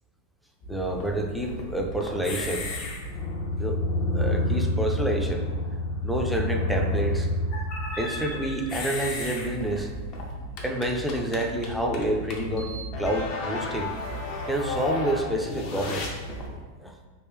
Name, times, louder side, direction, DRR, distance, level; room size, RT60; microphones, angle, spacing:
sound 1, 0.6-16.5, left 1 dB, 50° left, 0.6 m, -31 dB
voice 1, 0.7-2.7 3.6-3.8 4.1-5.4 6.0-7.3 8.0-9.9 10.6-13.9 14.5-16.1 16.8-16.9, right 1 dB, ahead, 2 dB, 0.4 m, -28 dB
3.2 x 2.4 x 3.4 m, 1.4 s
hypercardioid pair, 120°, 0 cm